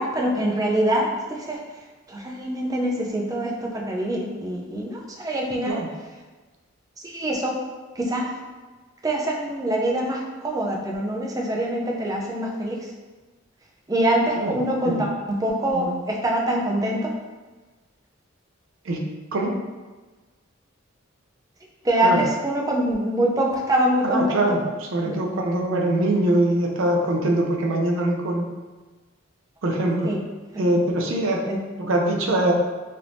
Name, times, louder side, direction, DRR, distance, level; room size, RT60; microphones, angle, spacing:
voice 1, 0.0-1.6 2.1-5.8 7.0-7.6 8.0-8.3 9.0-12.8 13.9-17.1 21.8-24.4 25.0-25.1 30.0-30.2 31.5-31.6, right 1 dB, 20° right, -2 dB, 0.4 m, -24 dB
voice 2, 24.0-28.5 29.6-30.1 30.6-31.4 31.8-32.5, right 1 dB, 80° right, 1 dB, 0.5 m, -23 dB
3.3 x 3.0 x 2.6 m, 1.3 s
head